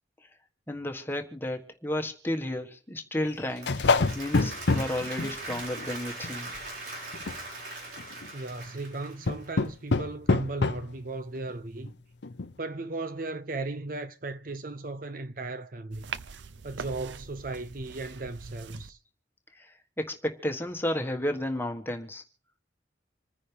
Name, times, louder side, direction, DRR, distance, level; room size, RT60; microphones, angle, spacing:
voice 1, 0.7-3.7 4.1-6.5 19.5-22.2, left 1 dB, 10° left, 1.5 m, -32 dB
sound 1, 3.3-5.9 6.2-6.7 7.1-7.4 8.0-8.3 9.3-10.9 11.5-11.6 11.9-12.0 12.2-12.5, left 3 dB, 75° left, 0.7 m, -27 dB
Applause, 3.4-9.6, right 2 dB, 65° right, 4.6 m, -40 dB
voice 2, 8.3-11.9 12.6-16.0 16.6-19.0, right 2 dB, 50° right, 0.7 m, -36 dB
sound 2, 15.9-18.9, right 6 dB, 90° right, 0.7 m, -42 dB
27.0 x 9.8 x 3.4 m
head